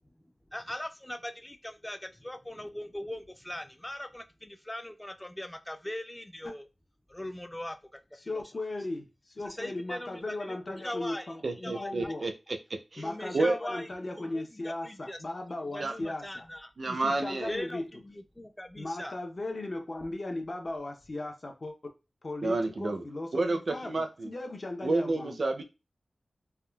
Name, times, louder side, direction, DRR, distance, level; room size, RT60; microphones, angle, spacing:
voice 1, 0.5-6.7 7.1-8.4 9.4-11.3 11.6-12.1 13.0-13.9 14.2-15.2 15.7-16.7 17.5-19.2, left 1 dB, 15° left, 8 dB, 0.3 m, -40 dB
voice 2, 8.2-12.3 13.0-16.5 16.8-17.9 18.8-21.7 22.2-25.4, left 2 dB, 45° left, 3 dB, 0.6 m, -37 dB
voice 3, 11.4-12.3 12.9-13.0 13.3-13.6 15.8-15.9 16.8-17.5 22.4-23.0 23.3-24.3 24.8-25.6, right 2 dB, 60° right, 7 dB, 0.4 m, -29 dB
3.5 x 2.2 x 2.2 m, 0.28 s
wide cardioid pair, 80°, 0 cm